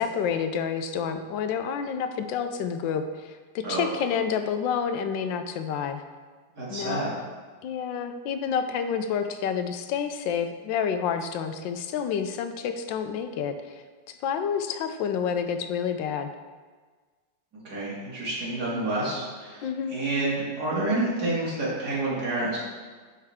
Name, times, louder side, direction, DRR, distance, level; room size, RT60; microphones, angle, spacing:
voice 1, 0.0-6.0 6.7-7.0 7.6-13.8 14.2-16.3 19.6-20.0, left 7 dB, 85° left, 8 dB, 1.3 m, -29 dB
voice 2, 6.6-7.1 17.6-19.6 19.9-22.6, right 2 dB, 60° right, -7 dB, 2.7 m, -28 dB
10.5 x 4.4 x 3.6 m, 1.4 s
omnidirectional pair, 2.0 m